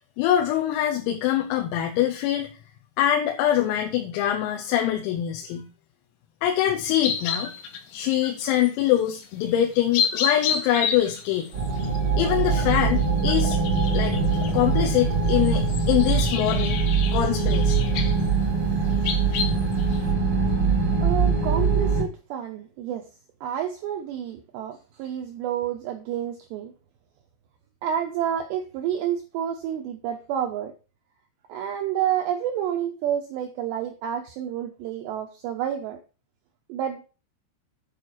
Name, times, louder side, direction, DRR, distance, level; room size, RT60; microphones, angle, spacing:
voice 1, 0.2-2.5 3.0-5.7 6.4-7.5 7.9-11.5 12.2-13.6 13.9-14.1 14.5-16.8 17.1-17.8, left 11 dB, 85° left, 3 dB, 3.7 m, -24 dB
sound 1, 7.0-9.3 9.7-20.1, left 7 dB, 70° left, 2.9 m, -32 dB
sound 2, 11.5-22.0, right 4 dB, 60° right, 1.4 m, -23 dB
voice 2, 21.0-23.1 23.4-26.7 27.8-30.7 31.5-36.0 36.7-37.0, right 10 dB, 80° right, 4 dB, 2.5 m, -29 dB
9.5 x 4.4 x 6.3 m, 0.34 s
omnidirectional pair, 6.0 m